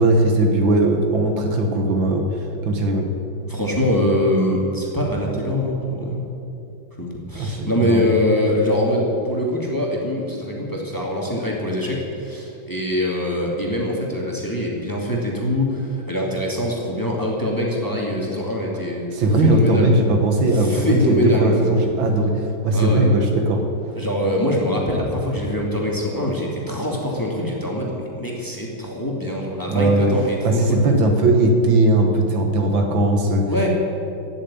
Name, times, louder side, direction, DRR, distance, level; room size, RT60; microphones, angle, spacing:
voice 1, 0.0-3.1 7.4-8.1 19.1-23.6 29.7-30.1 30.4-33.5, right 2 dB, 70° right, 4 dB, 2.0 m, -18 dB
voice 2, 3.5-6.3 7.0-19.9 20.5-21.8 22.7-23.1 24.0-30.8 33.5-33.7, left 1 dB, 10° left, -2 dB, 2.2 m, -23 dB
16.0 x 7.0 x 10.0 m, 2.7 s
omnidirectional pair, 2.3 m